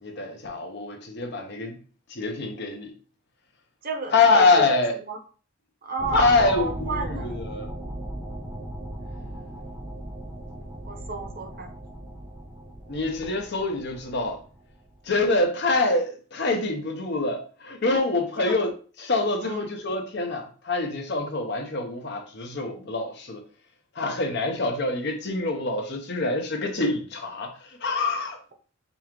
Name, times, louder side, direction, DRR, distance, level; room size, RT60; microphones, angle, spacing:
voice 1, 0.0-1.8 2.1-2.9 4.1-5.0 6.1-7.8 12.9-14.4 15.1-18.7 19.0-23.4 24.0-27.5 27.8-28.4, left 3 dB, 55° left, 0.8 m, -25 dB
voice 2, 3.8-5.2 5.8-7.3 10.8-11.7 17.9-18.0 18.4-18.5 19.4-19.7, right 3 dB, 45° right, 0.8 m, -32 dB
sound 1, 6.0-15.1, right 1 dB, 15° right, 0.5 m, -37 dB
5.4 x 2.4 x 3.0 m
head